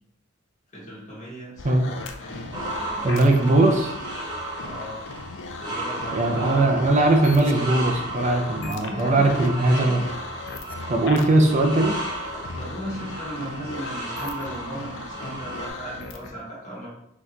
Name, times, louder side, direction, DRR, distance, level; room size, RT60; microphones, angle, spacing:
voice 1, 0.7-3.1 4.6-5.0 5.6-6.6 8.8-10.0 12.5-16.9, equal, 35° left, -7 dB, 1.6 m, -37 dB
sound 1, 1.6-16.3, left 3 dB, 65° left, 0.5 m, -38 dB
sound 2, 2.5-15.7, right 2 dB, 20° right, 0.9 m, -35 dB
voice 2, 3.0-3.9 6.1-10.0 10.9-12.0, right 2 dB, 35° right, 3 dB, 0.5 m, -20 dB
4.2 x 3.0 x 3.8 m, 0.78 s
head